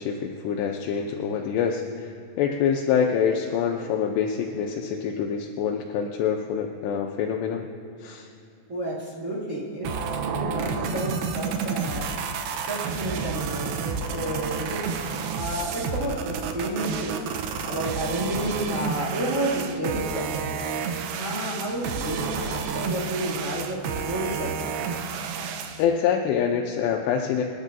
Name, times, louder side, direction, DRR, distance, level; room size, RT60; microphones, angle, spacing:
voice 1, 0.0-2.1 2.4-7.7 8.0-8.3 25.8-27.4, left 7 dB, 80° left, 2 dB, 2.8 m, -25 dB
voice 2, 8.7-9.9 10.2-12.1 12.5-14.8 15.3-17.2 17.6-20.7 21.2-24.8, right 1 dB, 50° right, -6 dB, 0.9 m, -31 dB
sound 1, 9.8-25.8, right 6 dB, 75° right, 2.4 m, -30 dB
27.0 x 11.0 x 2.7 m, 2.7 s
omnidirectional pair, 5.0 m